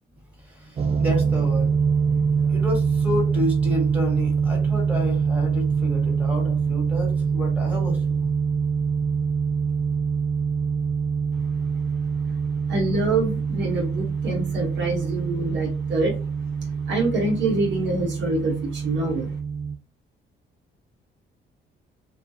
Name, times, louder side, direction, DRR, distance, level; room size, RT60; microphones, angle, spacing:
voice 1, 0.4-1.8 2.0-8.4, left 1 dB, 5° right, 1.4 m, -31 dB
sound 1, 0.8-19.8, right 6 dB, 30° right, 0.4 m, -24 dB
voice 2, 12.7-16.2 16.9-19.4, right 2 dB, 70° right, 1.0 m, -25 dB
2.3 x 2.3 x 2.7 m
cardioid pair, 90°, 20 cm